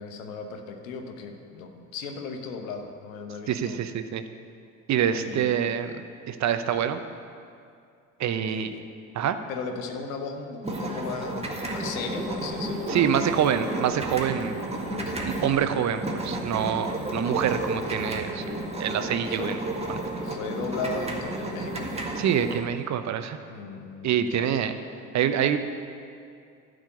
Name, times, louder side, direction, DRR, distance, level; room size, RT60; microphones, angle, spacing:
voice 1, 0.0-3.8 5.2-5.6 8.4-8.8 9.5-13.4 14.7-15.6 19.2-19.6 20.2-21.9 23.5-24.6, left 4 dB, 75° left, 5 dB, 1.1 m, -37 dB
voice 2, 3.5-4.2 4.9-5.9 6.3-7.0 8.2-8.7 9.1-9.4 12.9-14.6 15.2-18.4 18.8-19.6 19.9-20.0 22.2-23.4 24.0-24.8 25.1-25.6, right 9 dB, 45° right, 9 dB, 0.8 m, -26 dB
sound 1, 10.6-22.6, right 1 dB, 15° right, 1.8 m, -32 dB
11.5 x 5.1 x 8.4 m, 2.4 s
hypercardioid pair, 60°, 40 cm